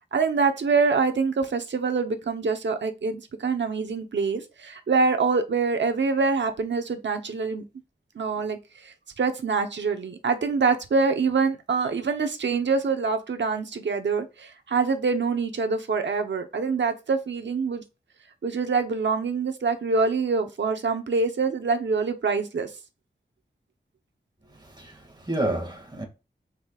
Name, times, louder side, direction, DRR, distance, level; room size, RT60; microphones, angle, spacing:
voice 1, 0.1-7.6 8.1-17.8 18.4-22.7, right 4 dB, 90° right, 1.1 m, -25 dB
voice 2, 24.5-26.0, right 1 dB, 25° right, 2.3 m, -30 dB
14.0 x 5.4 x 2.5 m
wide cardioid pair, 75°, 18 cm